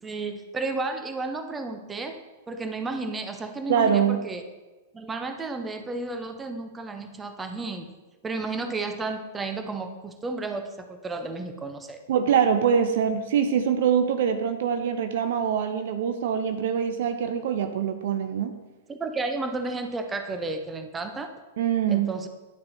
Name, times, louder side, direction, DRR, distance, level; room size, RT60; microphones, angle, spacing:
voice 1, 0.0-2.2 2.5-4.4 4.9-7.9 8.2-12.0 18.9-21.3 21.9-22.3, right 3 dB, 15° right, 6 dB, 0.8 m, -32 dB
voice 2, 3.7-4.2 12.1-18.5 21.6-22.1, right 7 dB, 60° right, 8 dB, 0.5 m, -24 dB
10.5 x 6.6 x 2.8 m, 1.2 s
figure-of-eight pair, 100°, 0 cm